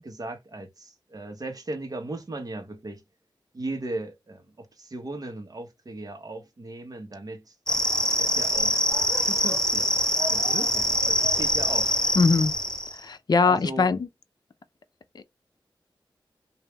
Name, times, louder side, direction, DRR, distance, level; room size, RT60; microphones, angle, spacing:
voice 1, 0.0-3.0 3.5-7.5 8.2-8.8 9.2-9.9 10.3-11.9 13.4-13.9, right 2 dB, 45° right, 1.2 m, -37 dB
sound 1, 7.7-13.0, left 1 dB, 10° left, 0.6 m, -24 dB
voice 2, 12.1-12.5 12.9-14.1 15.1-15.2, left 4 dB, 50° left, 0.5 m, -22 dB
3.3 x 2.6 x 3.3 m
wide cardioid pair, 70°, 9 cm